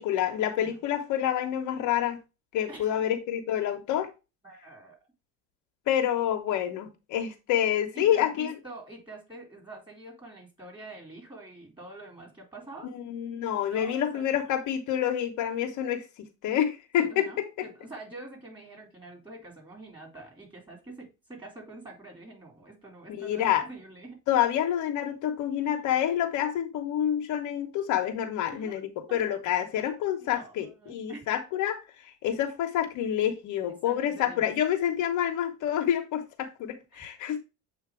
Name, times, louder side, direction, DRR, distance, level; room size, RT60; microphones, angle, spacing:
voice 1, 0.0-2.2 2.5-4.1 5.9-8.5 12.9-17.2 23.2-23.6 24.3-31.8 32.2-37.4, left 10 dB, 65° left, 1.1 m, -28 dB
voice 2, 4.4-5.0 7.9-12.9 13.7-14.4 17.0-24.2 25.6-25.7 28.5-28.8 29.1-29.4 30.2-31.3 33.8-34.5 36.9-37.0, right 2 dB, 15° right, 3.4 m, -46 dB
7.5 x 2.8 x 4.8 m
supercardioid pair, 100°, 32 cm